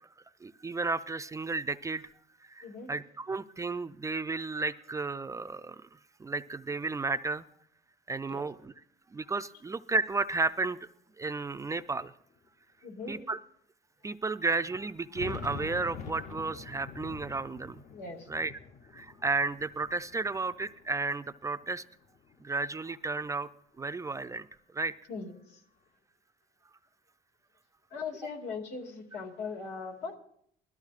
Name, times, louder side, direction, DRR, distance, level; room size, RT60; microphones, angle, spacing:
voice 1, 0.4-2.1 2.4-5.8 6.2-7.5 8.1-8.7 9.1-10.9 11.2-12.1 13.1-13.4 14.0-17.8 18.3-18.5 18.9-21.8 22.4-23.5 23.8-24.5 24.7-24.9, right 3 dB, 20° right, 11 dB, 0.4 m, -33 dB
sound 1, 11.5-11.6 12.5-12.6 13.1-13.2 14.8-21.2 21.6-22.6, left 6 dB, 45° left, 0.7 m, -45 dB
voice 2, 12.8-13.2 17.9-18.3 25.1-25.6 27.9-30.2, left 4 dB, 85° left, 1 dB, 2.2 m, -40 dB
19.5 x 13.0 x 2.4 m, 0.68 s
cardioid pair, 110°, 17 cm